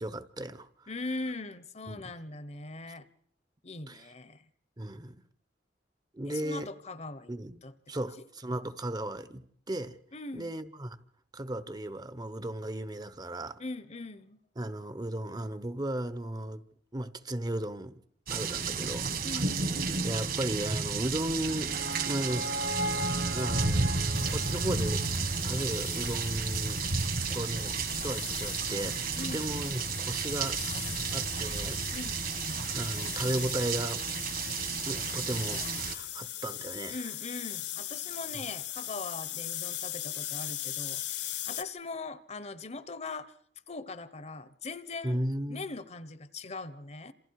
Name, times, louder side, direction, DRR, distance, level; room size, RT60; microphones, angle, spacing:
voice 1, 0.0-0.9 1.9-2.1 3.9-4.0 4.8-5.2 6.1-6.7 7.3-7.6 7.9-10.0 10.3-11.0 11.3-13.6 14.6-16.6 16.9-18.0 18.3-19.4 20.0-21.7 22.1-23.0 23.3-23.9 24.3-26.8 27.3-31.8 32.6-34.0 34.8-37.0 45.0-45.7, right 1 dB, 25° right, 1.0 m, -35 dB
voice 2, 0.9-3.1 3.6-4.5 6.2-7.3 7.6-8.0 10.1-10.5 13.6-14.4 19.2-19.7 29.2-29.4 31.9-32.2 36.9-43.3 43.7-45.2 45.5-47.1, left 3 dB, 40° left, 1.1 m, -40 dB
sound 1, 18.3-35.9, right 4 dB, 55° right, 2.1 m, -32 dB
sound 2, 21.2-26.3, equal, 75° right, 1.2 m, -38 dB
sound 3, 24.1-41.6, left 12 dB, 75° left, 1.7 m, -40 dB
28.5 x 27.0 x 4.8 m
head